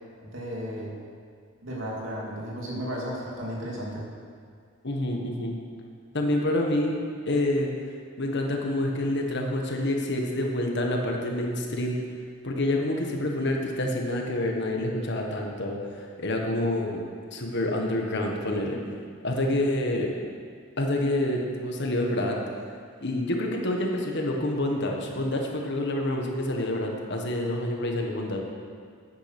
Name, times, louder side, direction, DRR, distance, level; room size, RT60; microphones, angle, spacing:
voice 1, 0.3-0.9 1.6-4.1, equal, 70° right, -3 dB, 2.6 m, -34 dB
voice 2, 4.8-5.6 6.1-6.9 7.3-7.7 8.2-11.9 12.4-17.0 17.3-18.8 19.2-20.1 20.8-22.4 23.0-28.4, left 1 dB, 60° left, 1 dB, 1.4 m, -27 dB
9.7 x 8.7 x 6.0 m, 2.1 s
head